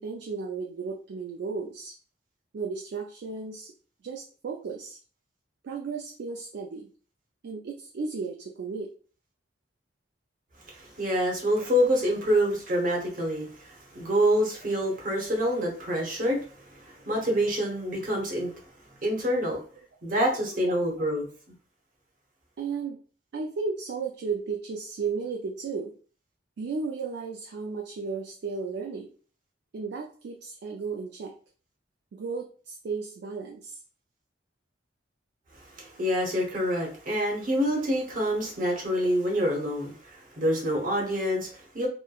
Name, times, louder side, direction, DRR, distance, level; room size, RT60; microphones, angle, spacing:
voice 1, 0.0-1.9 2.5-3.7 4.0-5.0 5.6-6.9 7.4-8.9 11.6-11.7 15.3-15.4 16.0-16.1 20.7-20.8 22.6-23.0 23.3-25.9 26.6-29.1 29.7-31.3 32.1-33.8, right 4 dB, 65° right, 0.3 m, -34 dB
voice 2, 10.7-18.5 19.0-19.6 20.0-21.3 35.7-41.9, equal, 50° right, 0.9 m, -27 dB
3.0 x 2.1 x 2.3 m
head